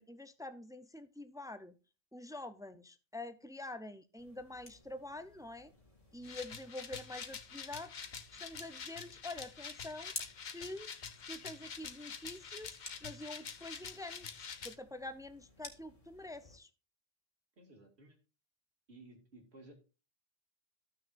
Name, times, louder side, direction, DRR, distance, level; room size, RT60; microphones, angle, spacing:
voice 1, 0.0-1.8 2.1-5.7 6.1-8.0 8.3-10.1 10.5-11.0 11.3-16.7, left 2 dB, 5° right, 11 dB, 0.3 m, -46 dB
sound 1, 4.2-16.6, left 2 dB, 35° left, 1.7 m, -54 dB
sound 2, 6.2-14.7, left 6 dB, 50° left, 0.8 m, -47 dB
voice 2, 17.6-18.2 18.9-19.7, right 2 dB, 80° right, 2 dB, 2.5 m, -57 dB
14.5 x 6.4 x 2.5 m, 0.32 s
omnidirectional pair, 1.1 m